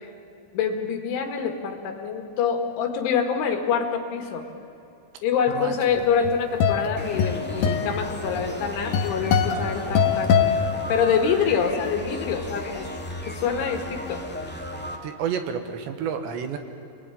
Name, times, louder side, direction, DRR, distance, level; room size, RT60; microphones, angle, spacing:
voice 1, 0.5-4.5 5.2-10.4 10.9-12.9 13.3-14.2, left 6 dB, 75° left, 5 dB, 4.4 m, -25 dB
sound 1, 6.0-11.4, left 6 dB, 60° left, 2.8 m, -24 dB
sound 2, 7.0-15.0, left 1 dB, 5° left, 1.2 m, -35 dB
voice 2, 15.0-16.6, right 7 dB, 70° right, 7 dB, 3.5 m, -29 dB
27.5 x 20.0 x 10.0 m, 2.9 s
omnidirectional pair, 5.5 m